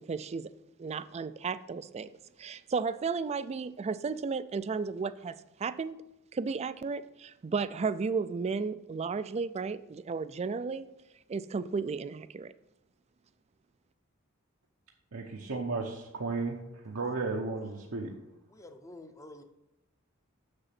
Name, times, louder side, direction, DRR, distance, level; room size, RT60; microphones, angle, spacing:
voice 1, 0.1-0.5 0.8-2.1 2.4-6.0 6.3-10.9 11.3-12.5, right 5 dB, 30° right, 15 dB, 0.3 m, -34 dB
voice 2, 15.1-18.1, right 3 dB, 80° right, 0 dB, 0.9 m, -34 dB
voice 3, 18.5-19.4, left 1 dB, 15° left, 8 dB, 0.7 m, -49 dB
7.0 x 6.6 x 5.9 m, 0.91 s
head